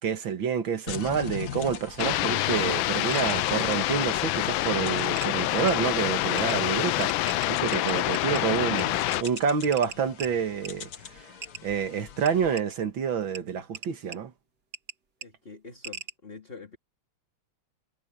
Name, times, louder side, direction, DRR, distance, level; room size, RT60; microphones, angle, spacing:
voice 1, 0.0-11.3 11.6-14.3, right 7 dB, 80° right, 2.5 m, -28 dB
sound 1, 0.9-12.6, left 9 dB, 55° left, 1.5 m, -42 dB
sound 2, 2.0-9.2, left 16 dB, 85° left, 1.4 m, -26 dB
sound 3, 2.0-2.1 3.1-3.2 4.6-4.7 5.2-5.3 5.7-5.8 6.4-6.6 7.0-8.4 8.8-8.9 9.1-10.3 10.7-10.8 11.4-11.6 12.3-12.6 13.4-13.5 13.7-14.2 14.7-15.0 15.2-15.3 15.8-16.1, right 5 dB, 55° right, 2.8 m, -39 dB
voice 2, 15.2-16.8, left 4 dB, 30° left, 2.6 m, -45 dB
omnidirectional pair, 2.1 m